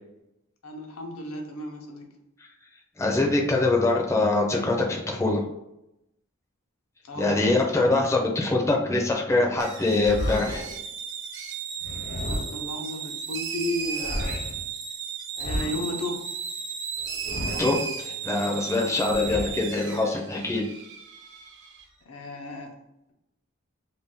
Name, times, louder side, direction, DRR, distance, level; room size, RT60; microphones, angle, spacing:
voice 1, 0.6-2.1 7.0-7.5 7.8-8.3 12.3-14.3 15.4-16.2 18.8-19.0 22.1-22.7, left 1 dB, 85° left, 1 dB, 0.7 m, -34 dB
voice 2, 3.0-5.4 7.1-10.6 17.6-20.7, left 2 dB, 15° left, 0 dB, 0.4 m, -24 dB
sound 1, 9.6-21.8, right 6 dB, 60° right, 0.5 m, -35 dB
sound 2, 10.0-10.8 11.8-12.7 13.8-14.6 15.4-16.0 17.0-17.8 18.9-19.7, equal, 55° left, 0.7 m, -33 dB
2.7 x 2.2 x 3.5 m, 0.87 s
head